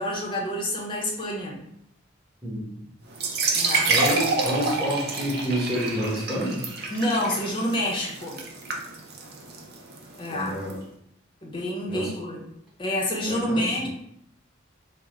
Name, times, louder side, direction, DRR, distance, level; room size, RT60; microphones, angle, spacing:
voice 1, 0.0-1.6 3.5-3.9 6.9-8.4 10.2-10.6 11.4-12.4 12.8-13.9, left 1 dB, 25° left, -2 dB, 0.7 m, -28 dB
sound 1, 3.1-10.7, right 3 dB, 55° right, 0.5 m, -28 dB
voice 2, 3.9-6.6 10.3-10.8 11.9-12.1 13.2-13.9, equal, ahead, -7 dB, 1.0 m, -29 dB
3.6 x 2.1 x 3.1 m, 0.73 s
head